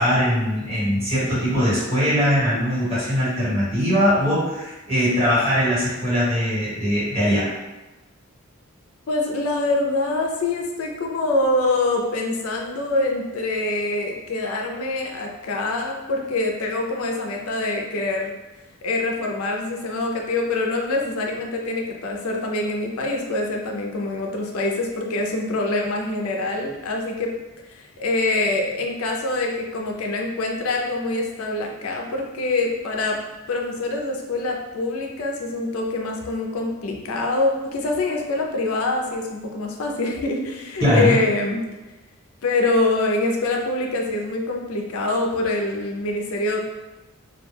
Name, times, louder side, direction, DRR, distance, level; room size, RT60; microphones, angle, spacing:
voice 1, 0.0-7.5 40.8-41.2, equal, 30° right, -10 dB, 1.4 m, -21 dB
voice 2, 9.1-18.3 18.8-27.3 27.7-33.2 33.5-41.6 42.4-46.6, left 2 dB, 75° left, 1 dB, 0.4 m, -25 dB
2.3 x 2.2 x 3.2 m, 1.1 s
head